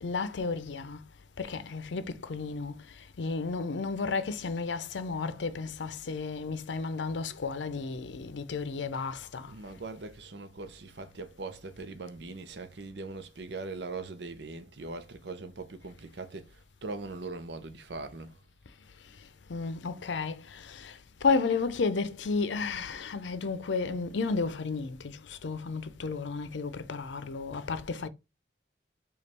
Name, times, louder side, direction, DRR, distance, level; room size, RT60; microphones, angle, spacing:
voice 1, 0.0-1.0 1.4-9.5 19.2-28.1, left 4 dB, 85° left, 0.5 m, -33 dB
voice 2, 9.5-18.3, right 3 dB, 70° right, 0.7 m, -41 dB
5.2 x 2.4 x 4.3 m
head